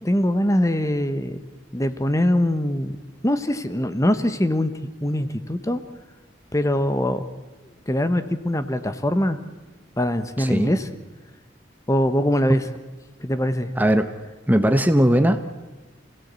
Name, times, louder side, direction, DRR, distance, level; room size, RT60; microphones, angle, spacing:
voice 1, 0.0-1.4 1.7-3.0 3.2-4.7 5.0-5.8 6.5-7.2 7.9-9.4 10.0-10.9 11.9-12.7 13.2-13.8, left 1 dB, 15° left, 10 dB, 1.1 m, -22 dB
voice 2, 10.4-10.7 13.8-14.1 14.5-15.5, right 1 dB, 10° right, 8 dB, 0.9 m, -19 dB
28.0 x 17.5 x 8.3 m, 1.2 s
head